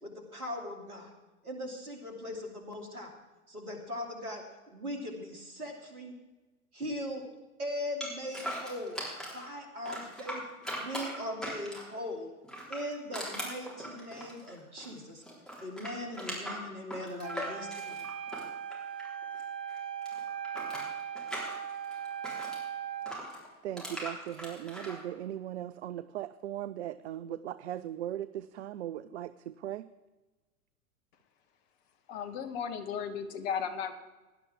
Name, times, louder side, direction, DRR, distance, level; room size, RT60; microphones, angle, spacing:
voice 1, 0.0-1.1 1.4-3.1 3.5-6.1 6.7-7.2 7.6-9.0 9.3-10.4 10.8-12.3 12.7-15.2 15.6-18.1, left 1 dB, 80° right, 3 dB, 2.9 m, -39 dB
sound 1, 8.0-9.4 9.8-12.0 12.4-15.0 15.2-19.4 19.7-22.6 23.1-25.0, equal, ahead, 4.0 m, -40 dB
Wind instrument woodwind instrument, 17.2-23.2, right 9 dB, 35° right, 0.9 m, -39 dB
voice 2, 23.6-29.9, right 12 dB, 50° right, 15 dB, 0.5 m, -38 dB
voice 3, 32.1-33.9, left 7 dB, 45° left, 9 dB, 1.5 m, -35 dB
17.5 x 11.5 x 3.6 m, 1.2 s
figure-of-eight pair, 95°, 43 cm